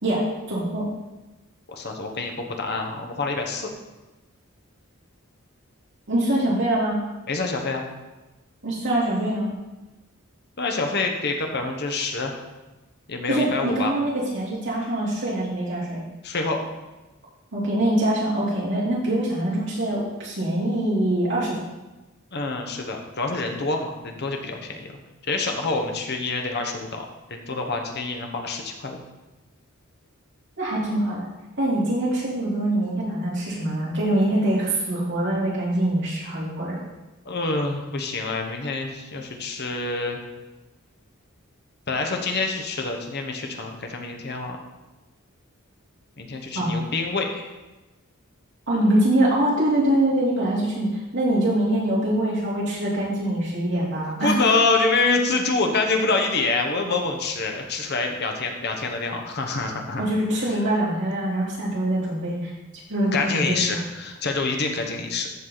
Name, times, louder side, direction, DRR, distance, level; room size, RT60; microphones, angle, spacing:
voice 1, 0.0-0.9 6.1-7.0 8.6-9.5 13.3-16.0 17.5-21.7 30.6-31.3 31.6-36.8 46.5-46.8 48.7-54.3 60.0-62.5 62.9-63.6, right 1 dB, 60° right, -6 dB, 3.2 m, -24 dB
voice 2, 1.7-3.7 7.3-7.8 10.6-12.3 13.1-13.9 16.2-16.6 22.3-24.9 25.3-27.0 27.3-29.0 37.2-40.2 41.9-44.6 46.2-47.5 54.2-60.0 63.1-65.3, left 3 dB, 50° left, 3 dB, 1.1 m, -26 dB
13.5 x 4.9 x 4.0 m, 1.1 s
head